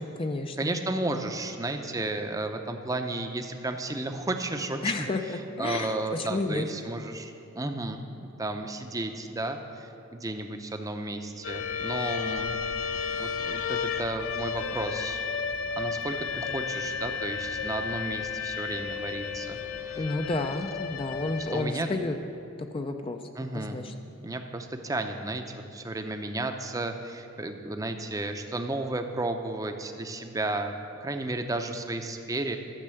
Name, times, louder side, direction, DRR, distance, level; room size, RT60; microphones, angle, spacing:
voice 1, 0.0-0.7 4.8-6.6 20.0-22.2 22.7-23.9, left 2 dB, 25° left, 6 dB, 0.4 m, -31 dB
voice 2, 0.6-8.0 8.4-12.6 13.2-15.2 15.8-20.0 21.4-22.0 23.4-23.8 24.2-25.4 25.7-30.7 31.0-32.6, right 2 dB, 15° right, 6 dB, 0.6 m, -33 dB
sound 1, 11.4-21.6, left 6 dB, 80° left, 0.6 m, -33 dB
12.0 x 6.6 x 7.7 m, 2.7 s
head